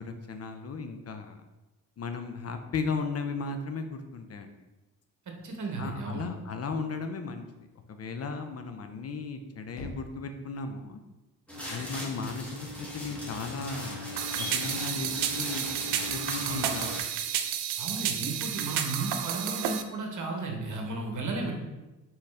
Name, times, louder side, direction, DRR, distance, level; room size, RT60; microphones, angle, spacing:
voice 1, 0.0-1.4 2.0-4.5 5.8-7.5 7.9-11.0 11.7-14.0 14.4-15.7 16.1-17.0, left 4 dB, 35° left, 7 dB, 0.5 m, -36 dB
voice 2, 5.3-6.2 16.4-16.7 17.8-21.5, right 3 dB, 40° right, 2 dB, 1.2 m, -34 dB
Knock, 9.8-10.7, left 2 dB, 85° left, 1.0 m, -44 dB
sound 1, 11.5-17.0, left 1 dB, 5° left, 1.5 m, -38 dB
sound 2, 14.2-19.8, right 10 dB, 60° right, 0.6 m, -31 dB
4.1 x 3.8 x 3.2 m, 1.1 s
hypercardioid pair, 55°, 45 cm